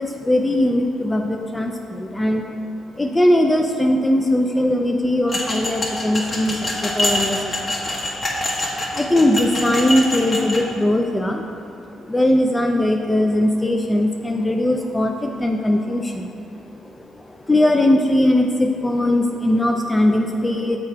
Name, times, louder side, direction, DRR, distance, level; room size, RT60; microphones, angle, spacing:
voice 1, 0.0-2.5 3.0-7.9 8.9-11.4 12.0-16.4 16.8-20.8, left 1 dB, 15° left, 2 dB, 0.3 m, -20 dB
sound 1, 5.3-10.6, left 1 dB, 35° left, 1.1 m, -25 dB
6.7 x 3.5 x 4.5 m, 2.8 s
cardioid pair, 90°, 0 cm